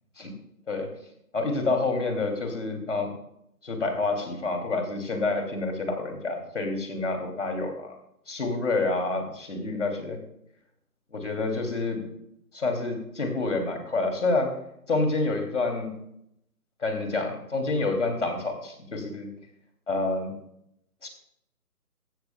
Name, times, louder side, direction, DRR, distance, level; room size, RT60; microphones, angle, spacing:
voice 1, 1.3-3.1 3.6-7.9 8.3-10.2 11.1-12.1 12.5-14.6 14.9-16.0 16.8-19.3 19.9-20.3 21.0-21.1, left 3 dB, 50° left, 4 dB, 2.7 m, -28 dB
15.0 x 13.0 x 2.2 m, 0.76 s
hypercardioid pair, 180°, 47 cm